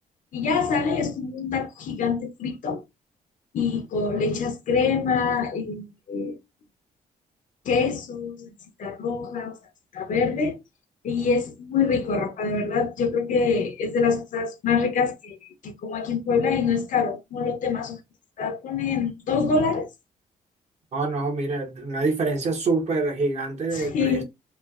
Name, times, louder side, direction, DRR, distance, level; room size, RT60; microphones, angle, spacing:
voice 1, 0.3-2.8 3.5-6.4 7.7-9.6 9.9-10.6 11.0-15.4 15.6-18.0 18.4-19.9 23.7-24.2, left 5 dB, 65° left, 0.6 m, -25 dB
voice 2, 20.9-24.2, right 3 dB, 50° right, 1.0 m, -26 dB
3.1 x 2.3 x 2.3 m
cardioid pair, 125°, 14 cm